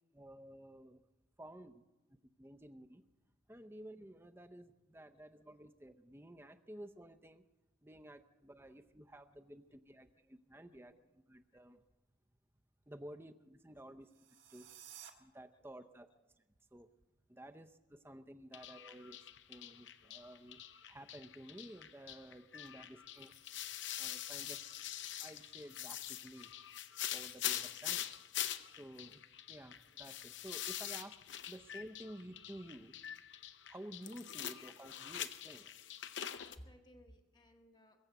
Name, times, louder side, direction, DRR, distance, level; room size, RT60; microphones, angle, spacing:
voice 1, 0.1-1.0 1.4-1.8 2.4-3.0 3.5-7.4 7.8-11.8 12.9-14.1 14.5-14.7 15.2-16.1 16.7-16.9 17.3-20.6 20.9-23.3 24.0-24.6 25.2-26.5 27.1-28.1 28.8-31.2 31.5-32.9 33.7-35.7, right 1 dB, 10° right, 9 dB, 0.6 m, -53 dB
voice 2, 10.7-11.0 11.7-11.8 15.5-16.2 36.2-38.0, equal, 20° left, 5 dB, 0.9 m, -61 dB
sound 1, 14.0-15.1, right 10 dB, 75° right, 1.6 m, -54 dB
sound 2, 18.5-36.6, left 11 dB, 65° left, 0.7 m, -44 dB
22.0 x 7.8 x 8.1 m, 1.0 s
head